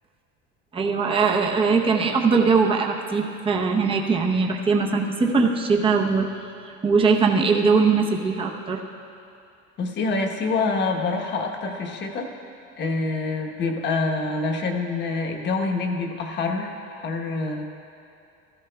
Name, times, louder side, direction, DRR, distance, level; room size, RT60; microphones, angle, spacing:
voice 1, 0.7-6.3 6.8-8.8, right 4 dB, 20° right, 1 dB, 0.8 m, -21 dB
voice 2, 9.8-12.3 12.8-17.6, left 3 dB, 40° left, 3 dB, 1.1 m, -26 dB
16.5 x 14.0 x 2.3 m, 2.6 s
cardioid pair, 155°, 29 cm